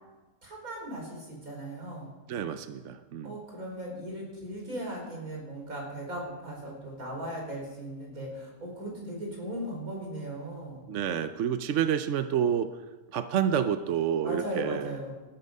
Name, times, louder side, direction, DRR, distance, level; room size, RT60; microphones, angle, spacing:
voice 1, 0.4-2.1 3.2-10.9 14.2-15.1, right 1 dB, 85° right, -1 dB, 5.2 m, -38 dB
voice 2, 2.3-3.4 10.9-12.8 13.1-15.0, right 8 dB, 65° right, 10 dB, 1.0 m, -29 dB
19.5 x 12.0 x 5.4 m, 1.2 s
omnidirectional pair, 1.5 m